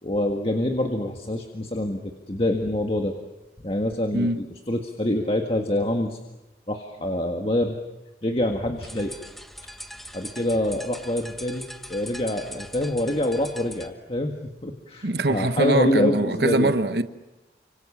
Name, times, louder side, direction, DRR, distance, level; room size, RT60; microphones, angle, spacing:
voice 1, 0.0-3.1 3.6-6.2 6.7-7.8 8.2-9.1 10.1-14.3 14.6-16.7, left 1 dB, 30° left, 1.7 m, -26 dB
sound 1, 8.8-13.9, equal, ahead, 1.2 m, -41 dB
voice 2, 15.0-17.0, right 2 dB, 65° right, 1.2 m, -23 dB
30.0 x 26.0 x 7.4 m
head